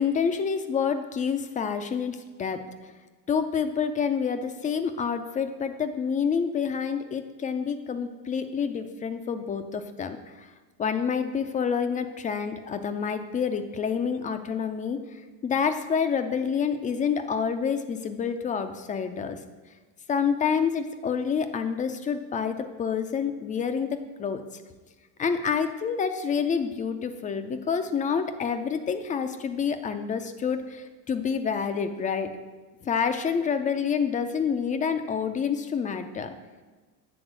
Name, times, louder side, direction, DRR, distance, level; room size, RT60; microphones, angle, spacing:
voice 1, 0.0-2.6 3.3-10.5 10.8-19.4 20.1-24.4 25.2-32.3 32.8-36.3, left 6 dB, 20° left, 8 dB, 0.3 m, -28 dB
8.0 x 3.6 x 6.1 m, 1.3 s
hypercardioid pair, 90°, 49 cm